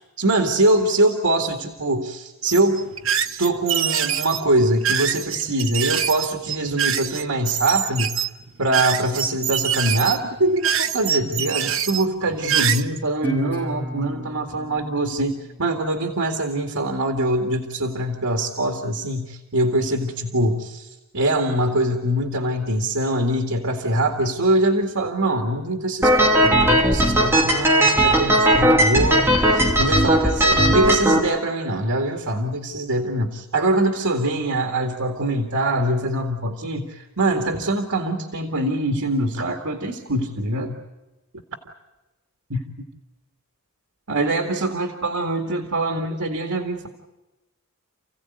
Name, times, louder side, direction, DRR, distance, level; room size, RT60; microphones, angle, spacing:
voice 1, 0.2-2.9 3.4-8.2 8.6-20.9 21.1-40.8 42.5-42.6 44.1-46.9, right 1 dB, 90° right, 4 dB, 2.2 m, -23 dB
sound 1, 2.5-12.8, right 8 dB, 65° right, 1.2 m, -25 dB
Guitar, 13.2-16.4, right 1 dB, 10° left, 6.3 m, -34 dB
sound 2, 26.0-31.2, right 1 dB, 10° right, 2.8 m, -17 dB
30.0 x 16.0 x 9.5 m, 1.0 s
head